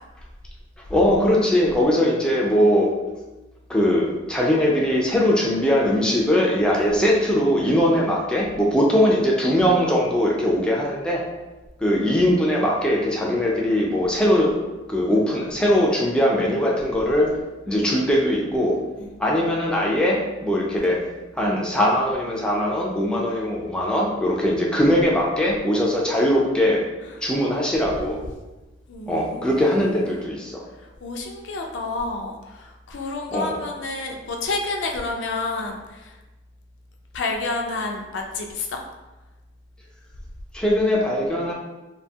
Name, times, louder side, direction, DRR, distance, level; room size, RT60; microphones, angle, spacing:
voice 1, 0.9-2.9 3.7-11.2 11.8-14.6 14.9-17.3 17.7-18.8 19.2-21.0 21.4-26.8 27.2-28.2 29.1-30.6 33.3-33.6 40.5-41.5, equal, 5° left, -3 dB, 0.3 m, -20 dB
voice 2, 28.9-29.7 30.0-30.2 31.0-36.2 37.1-38.8, left 3 dB, 90° left, 2 dB, 0.4 m, -29 dB
2.5 x 2.2 x 2.7 m, 1.1 s
head